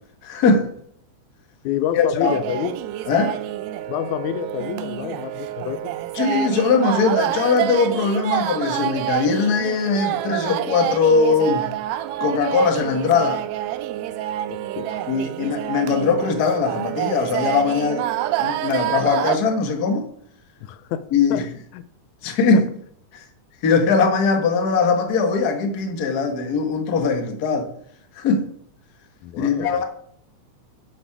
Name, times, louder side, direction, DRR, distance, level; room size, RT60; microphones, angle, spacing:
voice 1, 0.2-0.7 1.9-2.3 3.1-3.4 6.1-11.7 12.2-13.4 15.1-18.0 18.4-20.1 21.1-21.4 22.2-22.7 23.1-23.2 23.6-27.7 28.1-28.5 29.4-29.8, left 4 dB, 45° left, 1.3 m, -20 dB
voice 2, 1.6-2.8 3.9-6.0 14.5-15.1 20.6-21.5 21.7-21.9 22.5-22.7 29.2-29.8, left 10 dB, 80° left, 2.0 m, -28 dB
sound 1, 2.2-19.4, right 13 dB, 80° right, 1.7 m, -27 dB
11.5 x 8.1 x 4.8 m
omnidirectional pair, 3.5 m